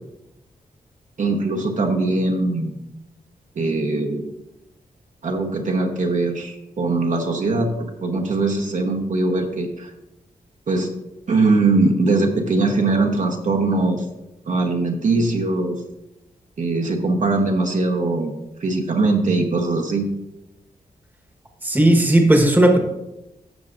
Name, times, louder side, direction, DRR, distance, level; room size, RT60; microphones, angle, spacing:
voice 1, 1.2-2.7 3.5-4.2 5.2-9.9 10.7-10.9 11.3-14.1 14.5-15.8 16.6-20.1, right 3 dB, 55° right, 1 dB, 1.1 m, -21 dB
voice 2, 21.6-22.8, right 1 dB, 10° right, 3 dB, 1.3 m, -15 dB
12.5 x 7.2 x 2.6 m, 0.94 s
cardioid pair, 95°, 15 cm